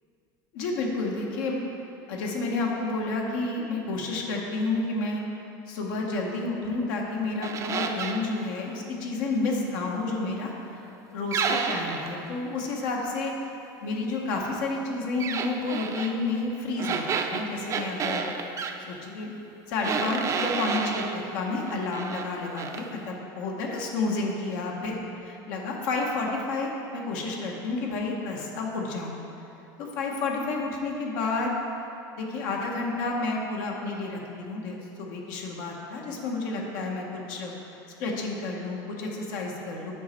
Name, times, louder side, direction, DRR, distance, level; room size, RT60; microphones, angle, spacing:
voice 1, 0.5-1.6 2.1-5.2 5.7-10.5 11.1-13.3 13.8-18.3 18.9-19.3 19.7-29.2 29.8-31.6 32.2-37.5 38.0-39.9, left 3 dB, 75° left, -1 dB, 1.1 m, -30 dB
sound 1, 7.4-8.3 11.3-12.1 15.2-16.1 16.8-18.8 19.8-21.2 21.7-22.3 22.6-22.8, right 5 dB, 30° right, 0.4 m, -30 dB
8.3 x 5.1 x 4.3 m, 2.8 s
supercardioid pair, 130°, 10 cm